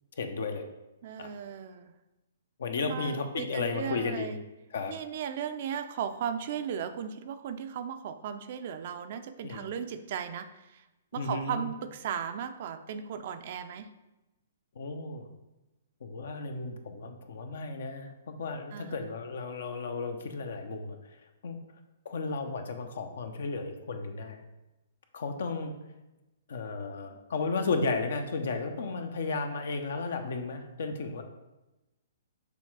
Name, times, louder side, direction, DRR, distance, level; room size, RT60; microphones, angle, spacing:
voice 1, 0.2-0.7 1.2-1.3 2.6-4.3 4.7-4.9 9.4-9.6 11.2-11.7 14.8-15.2 16.0-21.0 21.4-21.6 22.0-24.4 25.1-25.8 26.5-31.2, left 4 dB, 70° left, 6 dB, 0.9 m, -34 dB
voice 2, 1.0-1.9 2.8-4.5 4.9-10.8 11.1-13.9 18.7-19.1, right 8 dB, 55° right, 9 dB, 0.5 m, -36 dB
6.8 x 3.2 x 4.7 m, 1.0 s
hypercardioid pair, 130°, 0 cm